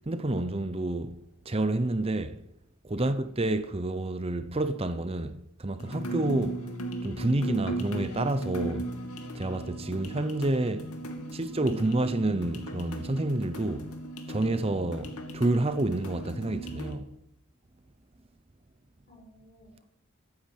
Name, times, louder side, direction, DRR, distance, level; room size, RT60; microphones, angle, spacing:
voice 1, 0.1-1.2 1.4-2.4 2.8-6.7 7.0-8.9 9.3-10.9 11.3-13.9 14.3-17.1, right 2 dB, 25° right, 0.7 m, -29 dB
sound 1, 5.8-16.9, right 1 dB, 80° left, 2.4 m, -37 dB
voice 2, 11.1-11.6 19.1-19.8, equal, 40° left, 6.9 m, -51 dB
15.0 x 9.7 x 9.0 m
head